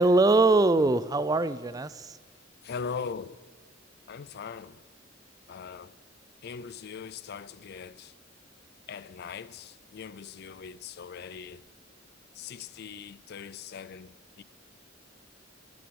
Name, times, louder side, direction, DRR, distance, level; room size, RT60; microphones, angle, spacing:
voice 1, 0.0-2.2, right 2 dB, 20° right, 0.4 m, -22 dB
voice 2, 2.6-3.4 4.1-4.8 5.5-6.0 6.4-8.1 8.9-11.6 12.3-14.4, left 6 dB, 55° left, 0.4 m, -40 dB
22.0 x 7.7 x 7.0 m
head